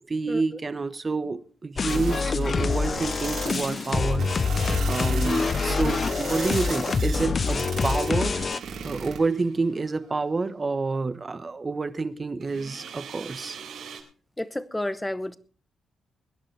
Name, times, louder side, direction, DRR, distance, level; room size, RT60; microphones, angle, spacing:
voice 1, 0.1-8.4 8.8-13.6, right 3 dB, 30° right, 1.2 m, -28 dB
sound 1, 1.8-8.6, left 4 dB, 40° left, 0.6 m, -26 dB
sound 2, 1.9-9.2, right 6 dB, 70° right, 3.3 m, -36 dB
sound 3, 8.0-10.1 12.4-14.0, right 7 dB, 90° right, 3.7 m, -43 dB
voice 2, 14.4-15.4, left 1 dB, 10° left, 0.9 m, -30 dB
22.0 x 11.0 x 3.4 m
cardioid pair, 105°, 0 cm